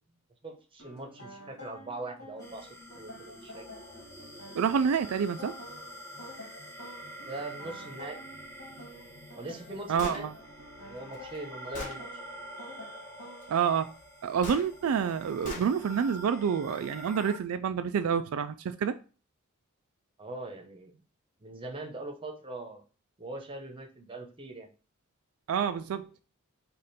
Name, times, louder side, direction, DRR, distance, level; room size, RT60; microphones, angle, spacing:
voice 1, 0.4-2.7 3.0-3.6 7.3-8.2 9.4-10.3 10.8-12.1 20.2-20.9 21.4-22.8 23.2-24.7, right 2 dB, 25° right, 0.9 m, -41 dB
sound 1, 0.8-13.6, left 1 dB, 75° left, 1.7 m, -49 dB
sound 2, 2.4-17.4, equal, 15° left, 1.0 m, -47 dB
voice 2, 4.6-5.6 9.9-10.3 13.5-13.9 14.2-19.0 25.5-26.1, right 7 dB, 75° right, 0.3 m, -28 dB
Gunshot gunfire, 10.0-10.2 11.1-11.2 11.7-12.0 14.4-14.6 15.4-15.7, left 2 dB, 40° left, 1.1 m, -38 dB
5.0 x 2.5 x 4.1 m
head